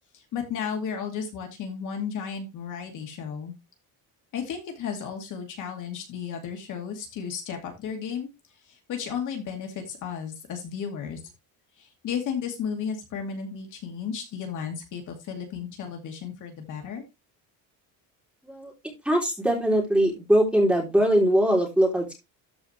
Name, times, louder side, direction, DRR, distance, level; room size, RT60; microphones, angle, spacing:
voice 1, 0.3-3.5 4.3-8.3 8.7-11.2 11.8-17.1, left 7 dB, 50° left, 3 dB, 2.4 m, -34 dB
voice 2, 19.0-22.1, right 1 dB, 5° right, 0 dB, 3.3 m, -21 dB
13.5 x 4.8 x 3.2 m, 0.23 s
cardioid pair, 165°, 39 cm